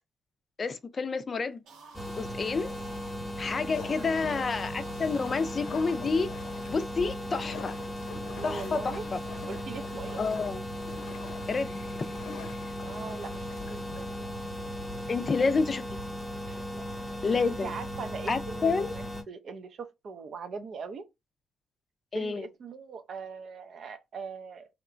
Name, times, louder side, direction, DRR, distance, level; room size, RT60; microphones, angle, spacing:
voice 1, 0.6-1.6 2.2-2.7 3.4-6.3 6.7-7.7 8.4-9.2 10.2-10.6 11.5-11.8 15.1-15.8 17.2-17.7 18.3-19.0 22.1-22.5, left 4 dB, 35° left, 0.4 m, -29 dB
sound 1, 1.5-6.3, right 4 dB, 80° right, 1.0 m, -53 dB
sound 2, 1.9-19.2, left 1 dB, 10° left, 0.9 m, -37 dB
sound 3, 3.7-14.7, left 5 dB, 80° left, 0.6 m, -46 dB
voice 2, 8.4-9.0 9.5-10.2 12.8-14.3 16.5-17.0 17.6-21.1 22.1-24.7, right 5 dB, 55° right, 0.6 m, -41 dB
2.8 x 2.2 x 2.5 m
cardioid pair, 90°, 0 cm